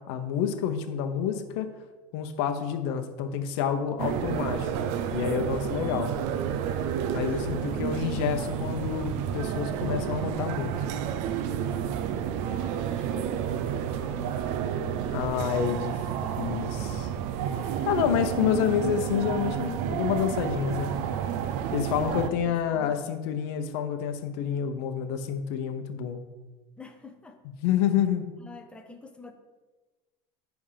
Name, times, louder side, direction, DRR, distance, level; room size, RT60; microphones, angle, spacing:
voice 1, 0.0-1.7 2.1-4.7 5.1-6.1 7.1-10.7 15.1-15.9 16.4-17.1 17.9-20.9 21.7-26.2 27.6-28.3, left 8 dB, 70° left, 7 dB, 0.8 m, -28 dB
sound 1, 4.0-22.3, right 9 dB, 60° right, 0.6 m, -30 dB
voice 2, 5.7-6.1 7.2-9.3 11.5-12.2 12.6-16.6 17.6-17.9 21.3-23.1 26.8-27.4 28.4-29.3, equal, 10° left, 5 dB, 0.7 m, -46 dB
9.8 x 3.6 x 5.7 m, 1.2 s
cardioid pair, 165°, 14 cm